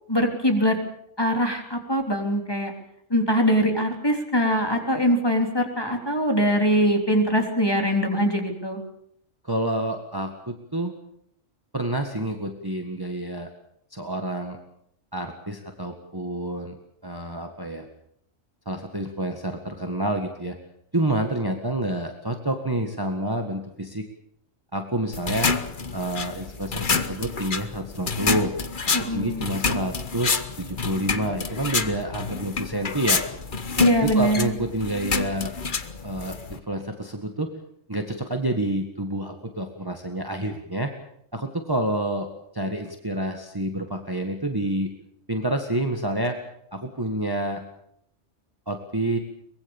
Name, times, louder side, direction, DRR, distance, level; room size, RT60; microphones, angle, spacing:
voice 1, 0.1-0.8 1.2-2.7 3.1-8.8 28.9-29.5 33.8-34.5, equal, 20° left, 3 dB, 3.5 m, -22 dB
voice 2, 9.4-10.9 11.7-13.5 13.9-14.6 15.1-16.8 17.0-17.9 18.7-20.6 20.9-24.0 24.7-25.5 25.9-28.5 29.0-33.2 34.0-35.5 36.0-37.5 37.9-40.9 41.3-42.3 42.5-44.9 45.3-46.4 46.7-47.6 48.7-49.2, right 1 dB, 15° right, 4 dB, 1.8 m, -28 dB
sound 1, 25.1-36.6, left 4 dB, 40° left, 1.3 m, -28 dB
23.5 x 21.0 x 7.3 m, 0.72 s
omnidirectional pair, 1.3 m